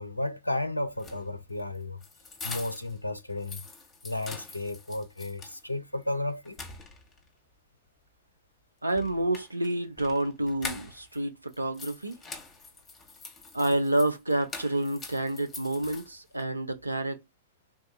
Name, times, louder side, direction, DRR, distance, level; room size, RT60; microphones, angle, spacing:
voice 1, 0.0-2.0 2.4-3.6 4.0-6.6, left 2 dB, 85° left, 0.4 m, -33 dB
sound 1, 0.9-3.0 3.3-5.6 6.0-6.1 6.4-7.3 8.9-11.2 11.5-16.4, left 4 dB, 20° left, 0.9 m, -44 dB
voice 2, 8.8-12.2 13.5-17.2, right 1 dB, 85° right, 0.4 m, -29 dB
3.5 x 2.3 x 2.5 m
figure-of-eight pair, 90°, 0 cm